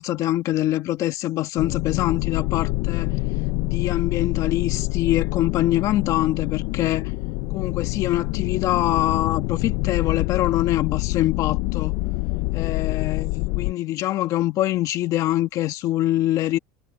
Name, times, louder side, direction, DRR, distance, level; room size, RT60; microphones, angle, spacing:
voice 1, 0.0-3.1 3.6-7.1 7.5-12.0 12.5-13.3 13.6-16.6, left 14 dB, 45° left, 1.6 m, -24 dB
sound 1, 1.6-13.7, left 22 dB, 65° left, 0.8 m, -26 dB
supercardioid pair, 135°, 8 cm